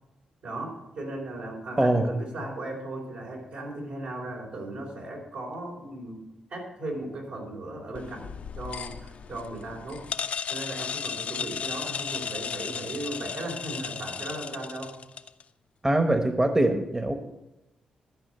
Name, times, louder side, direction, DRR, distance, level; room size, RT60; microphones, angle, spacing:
voice 1, 0.4-6.2 6.5-8.3 8.6-10.1 10.5-14.9, right 1 dB, 75° right, -1 dB, 4.1 m, -37 dB
voice 2, 1.8-2.1 15.8-17.1, right 1 dB, 20° right, 6 dB, 1.0 m, -23 dB
sound 1, 7.9-15.4, left 6 dB, 60° left, 0.5 m, -35 dB
12.0 x 5.2 x 7.9 m, 0.99 s
cardioid pair, 75°, 3 cm